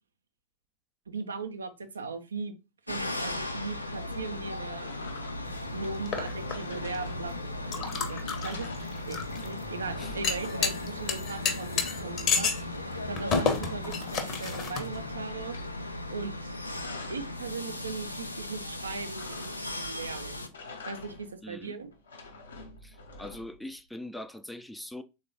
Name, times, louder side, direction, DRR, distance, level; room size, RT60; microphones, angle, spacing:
voice 1, 1.1-2.5 2.9-4.9 5.7-7.4 7.6-12.5 13.0-15.6 16.1-16.5 17.1-20.5 20.9-21.9, right 4 dB, 70° right, 0.5 m, -39 dB
sound 1, 2.9-20.5, left 1 dB, 85° left, 0.4 m, -37 dB
sound 2, 4.8-5.6 6.3-7.6 8.0-8.1 8.3-9.4 9.7-10.9 12.6-14.4 14.8-15.7 16.4-17.4 19.1-19.9 20.4-21.4 21.9-23.7, left 3 dB, 70° left, 0.9 m, -47 dB
sound 3, 5.4-15.2, left 5 dB, 35° left, 0.9 m, -33 dB
voice 2, 21.4-21.7 22.8-25.0, left 1 dB, 5° left, 0.3 m, -42 dB
3.7 x 2.4 x 3.3 m
figure-of-eight pair, 90°, 0 cm